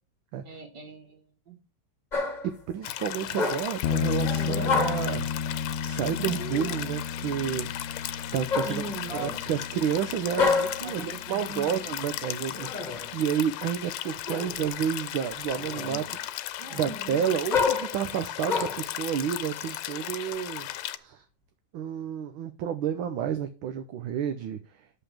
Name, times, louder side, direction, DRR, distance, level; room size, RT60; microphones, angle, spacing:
voice 1, 0.4-1.6 8.6-9.6 10.8-11.8, right 3 dB, 55° right, 2.7 m, -40 dB
sound 1, 2.1-2.6 3.3-3.9 4.2-5.2 6.1-6.9 8.5-9.5 10.3-10.9 12.4-13.1 14.2-14.8 15.3-16.1 16.6-18.9 19.6-20.7, left 4 dB, 25° left, 1.6 m, -30 dB
voice 2, 2.4-5.3 5.8-7.7 8.3-8.8 9.1-16.0 16.7-20.7 21.0-21.2 21.7-24.6, right 9 dB, 75° right, 1.6 m, -30 dB
sound 2, 2.8-21.0, left 13 dB, 90° left, 1.5 m, -36 dB
sound 3, 3.8-13.3, left 7 dB, 75° left, 1.3 m, -34 dB
7.0 x 5.6 x 7.2 m
omnidirectional pair, 2.3 m